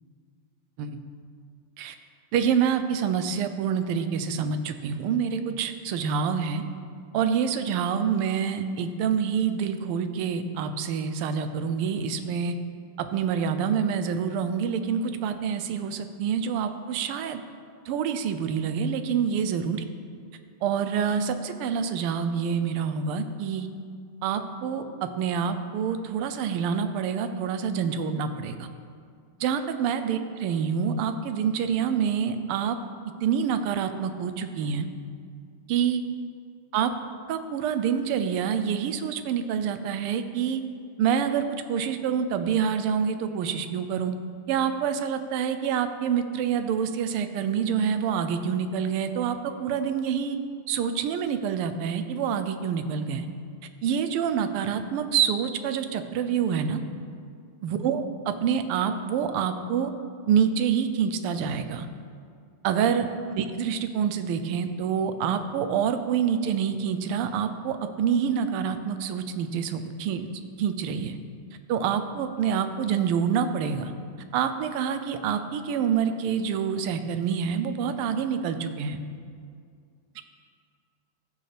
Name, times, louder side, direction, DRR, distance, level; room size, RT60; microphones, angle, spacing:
voice 1, 2.3-6.6 7.1-12.6 13.0-17.4 17.9-19.8 20.6-23.7 24.2-28.7 29.4-32.8 33.2-34.9 35.7-36.0 36.7-36.9 37.3-40.6 41.0-44.1 44.5-50.4 50.7-53.3 53.8-56.8 57.6-59.9 60.3-61.9 62.6-70.3 70.6-71.2 71.7-73.9 74.3-79.0, right 7 dB, 85° right, 9 dB, 1.5 m, -27 dB
15.0 x 6.6 x 3.3 m, 2.2 s
omnidirectional pair, 2.4 m